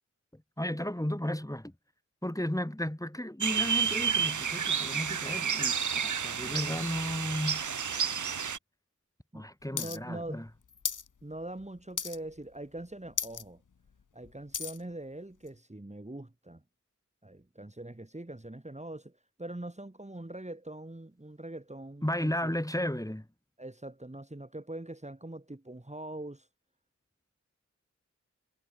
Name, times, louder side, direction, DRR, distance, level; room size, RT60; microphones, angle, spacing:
voice 1, 0.3-1.7 2.2-7.6 9.3-10.4 22.0-23.3, left 1 dB, 10° left, 4.5 m, -34 dB
sound 1, 3.4-8.6, right 7 dB, 75° right, 0.7 m, -30 dB
voice 2, 9.3-10.4 11.2-13.6 14.1-16.6 17.2-22.5 23.6-26.5, right 1 dB, 20° right, 2.7 m, -43 dB
sound 2, 9.8-10.0 10.2-11.1 11.4-11.7 12.0-12.4 12.8-12.9 13.1-13.4 13.9-14.8 15.5-15.6, left 6 dB, 85° left, 1.1 m, -35 dB
wide cardioid pair, 60°, 30 cm